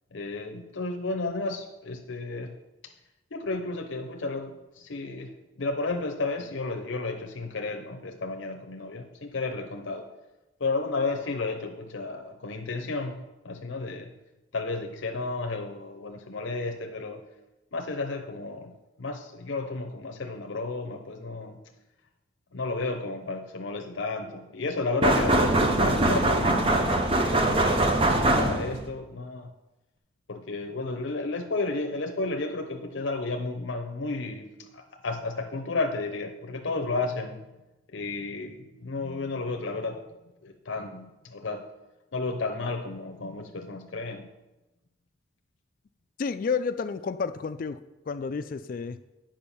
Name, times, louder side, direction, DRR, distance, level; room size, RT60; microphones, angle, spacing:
voice 1, 0.1-2.6 3.3-5.3 5.6-10.1 10.6-14.1 14.5-17.2 17.7-21.6 22.5-29.5 30.3-37.4 37.9-40.0 40.4-41.7 42.1-44.3, left 3 dB, 75° left, 4 dB, 0.7 m, -32 dB
sound 1, 25.0-28.9, right 1 dB, 30° right, 0.7 m, -22 dB
voice 2, 46.2-47.8 48.1-49.0, left 5 dB, 45° left, 12 dB, 0.3 m, -30 dB
8.8 x 5.3 x 5.5 m, 1.0 s
head